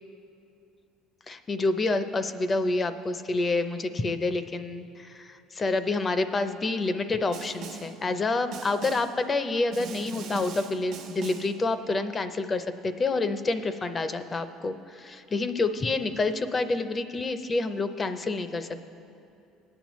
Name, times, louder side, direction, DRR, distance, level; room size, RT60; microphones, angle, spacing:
voice 1, 1.3-18.9, left 3 dB, 25° left, 10 dB, 0.5 m, -28 dB
Snare drum, 7.3-8.0 8.5-9.2 9.7-11.6, right 5 dB, 70° right, 0.9 m, -40 dB
20.0 x 8.8 x 3.1 m, 2.6 s
cardioid pair, 120°, 0 cm